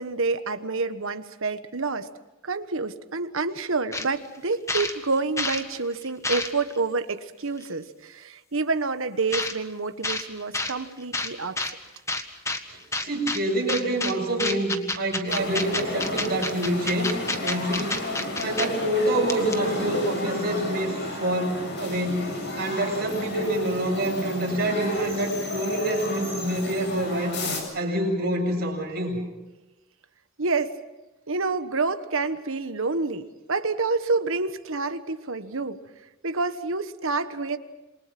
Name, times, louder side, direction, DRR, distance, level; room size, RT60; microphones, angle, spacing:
voice 1, 0.0-2.1 2.4-11.6 30.4-30.8 31.3-35.8 36.2-37.6, right 3 dB, 65° right, 10 dB, 1.4 m, -28 dB
sound 1, 3.9-4.1 4.4-5.6 6.0-6.8 7.6-7.7 9.3-9.6 10.0-10.2 10.5-10.7 11.1-11.7 12.1-12.6 12.9-13.4 13.7-14.1 14.4-18.7 19.0-19.1 19.3-19.8, left 2 dB, 15° left, 1.6 m, -28 dB
voice 2, 12.7-18.1 18.4-27.4 27.7-29.2, right 1 dB, 50° right, 0 dB, 7.8 m, -27 dB
sound 2, 15.3-27.6, left 2 dB, 55° left, 7.2 m, -32 dB
28.0 x 23.5 x 6.0 m, 1.1 s
head